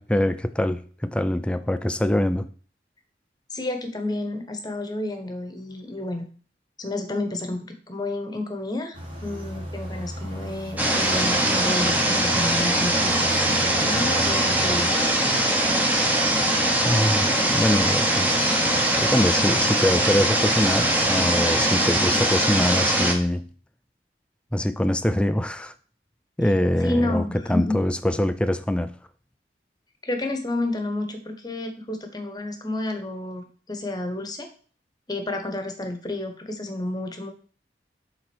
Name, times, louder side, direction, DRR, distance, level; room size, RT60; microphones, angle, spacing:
voice 1, 0.0-2.5 16.8-23.5 24.5-25.7 26.4-28.9, left 1 dB, 5° left, 0.4 m, -24 dB
voice 2, 3.5-6.2 6.8-14.9 26.8-27.8 30.0-34.5 35.1-37.3, left 2 dB, 20° left, 1.2 m, -30 dB
sound 1, 8.9-14.9, equal, 30° right, 2.0 m, -36 dB
sound 2, 10.8-23.1, right 1 dB, 10° right, 1.1 m, -21 dB
7.5 x 3.9 x 6.2 m
head